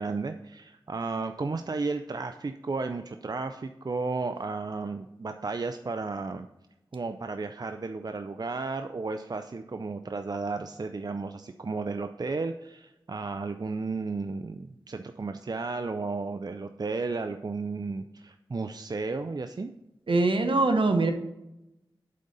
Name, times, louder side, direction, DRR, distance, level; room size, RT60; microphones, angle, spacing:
voice 1, 0.0-6.5 6.9-19.7, right 3 dB, 50° right, 7 dB, 0.4 m, -33 dB
voice 2, 20.1-21.1, right 3 dB, 75° right, 6 dB, 0.9 m, -23 dB
8.4 x 3.9 x 5.4 m, 0.91 s
wide cardioid pair, 50°, 9 cm